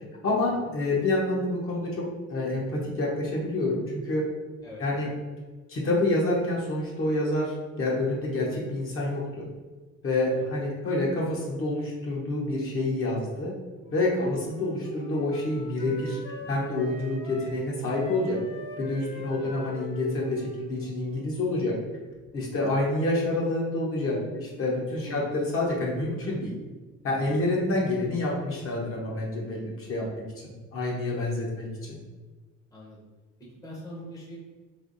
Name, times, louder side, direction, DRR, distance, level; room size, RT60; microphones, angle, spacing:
voice 1, 0.2-2.0 2.3-4.2 4.8-5.1 5.7-9.5 10.0-13.5 13.9-16.2 16.5-18.4 18.8-21.7 22.3-26.5 27.0-32.0, left 2 dB, 45° left, -3 dB, 1.0 m, -28 dB
Wind instrument woodwind instrument, 13.8-21.8, equal, 85° left, 1.1 m, -43 dB
voice 2, 22.3-22.6 25.0-25.3 27.2-27.5 32.7-33.0 33.6-34.4, equal, 10° left, -5 dB, 0.8 m, -43 dB
3.4 x 3.0 x 3.9 m, 1.3 s
cardioid pair, 155°, 31 cm